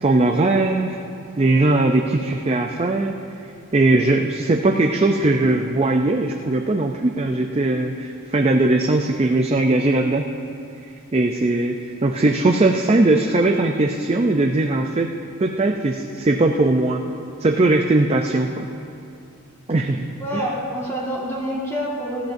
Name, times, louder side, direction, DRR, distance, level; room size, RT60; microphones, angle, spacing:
voice 1, 0.0-1.0 1.4-3.2 3.7-10.3 11.1-15.1 15.4-17.0 17.4-18.7 19.7-20.1 20.3-20.4, right 2 dB, 25° right, 3 dB, 0.4 m, -19 dB
voice 2, 20.2-22.3, equal, 10° left, -5 dB, 1.7 m, -27 dB
20.0 x 14.5 x 2.6 m, 2.6 s
head